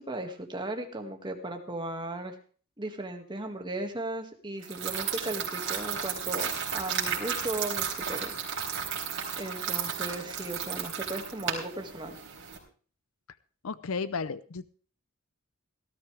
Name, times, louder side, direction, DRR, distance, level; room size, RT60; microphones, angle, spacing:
voice 1, 0.0-2.4 2.8-8.3 8.6-9.0 9.4-12.2, right 1 dB, 20° right, 4 dB, 2.0 m, -36 dB
sound 1, 4.6-12.6, right 7 dB, 60° right, 4.0 m, -33 dB
voice 2, 13.6-14.7, left 4 dB, 80° left, 16 dB, 0.6 m, -33 dB
18.0 x 13.0 x 3.4 m, 0.40 s
head